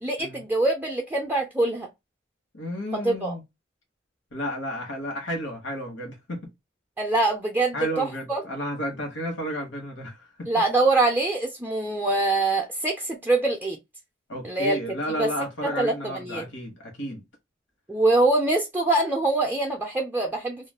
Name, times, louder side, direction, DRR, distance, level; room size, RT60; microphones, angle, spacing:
voice 1, 0.0-1.9 3.0-3.4 7.0-8.4 10.5-13.8 14.4-14.8 15.2-15.3 15.6-16.4 17.9-20.7, right 2 dB, 10° right, 0.4 m, -24 dB
voice 2, 2.5-3.4 4.3-6.5 7.7-10.5 14.3-17.2, equal, 85° left, 1.1 m, -32 dB
2.4 x 2.2 x 3.2 m
head